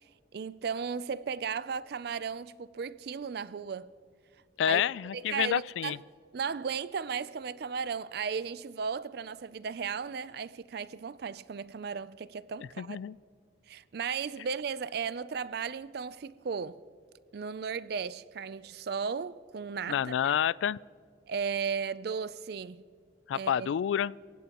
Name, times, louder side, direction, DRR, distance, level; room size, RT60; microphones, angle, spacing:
voice 1, 0.3-3.9 4.6-4.8 5.1-6.0 6.3-13.0 13.7-16.8 17.3-20.1 21.3-22.8 23.3-23.7, right 6 dB, 55° right, 0.4 m, -35 dB
voice 2, 4.6-6.0 12.8-13.2 19.9-20.8 23.3-24.1, left 9 dB, 80° left, 0.3 m, -28 dB
27.5 x 16.0 x 3.0 m
head